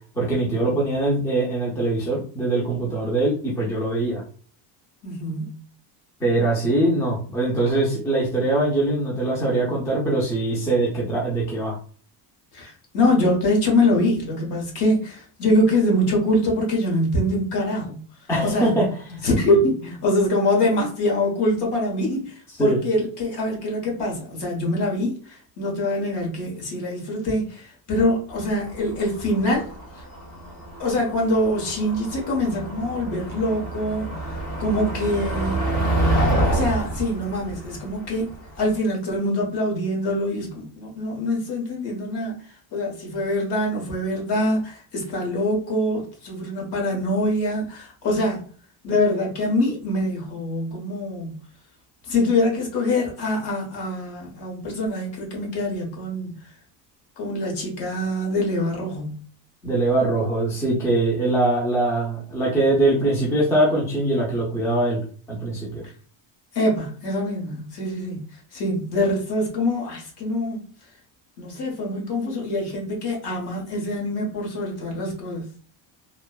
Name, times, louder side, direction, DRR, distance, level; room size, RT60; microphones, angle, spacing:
voice 1, 0.1-4.2 6.2-11.8 18.3-19.2 22.6-22.8 59.6-65.0 65.3-65.8, right 2 dB, 5° left, 0.4 m, -22 dB
voice 2, 5.0-5.5 12.5-17.9 18.4-18.7 19.2-29.7 30.8-35.6 36.4-48.4 48.8-51.4 52.1-56.3 57.2-59.2 65.8-65.9 66.5-70.6 71.4-75.5, left 1 dB, 55° left, 1.2 m, -24 dB
Motor vehicle (road), 28.4-38.7, right 1 dB, 30° left, 1.4 m, -27 dB
2.9 x 2.0 x 2.2 m
cardioid pair, 145°, 47 cm